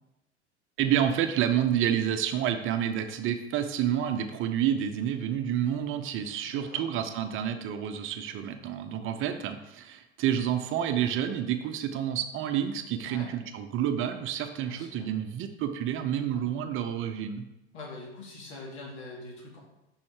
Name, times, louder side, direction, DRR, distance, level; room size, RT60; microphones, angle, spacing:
voice 1, 0.8-17.4, right 10 dB, 35° right, 8 dB, 0.8 m, -29 dB
voice 2, 6.4-6.8 13.1-13.3 14.7-15.1 16.3-16.4 17.7-19.6, left 3 dB, 70° left, -2 dB, 2.9 m, -43 dB
7.0 x 5.7 x 4.8 m, 0.93 s
hypercardioid pair, 90°, 35 cm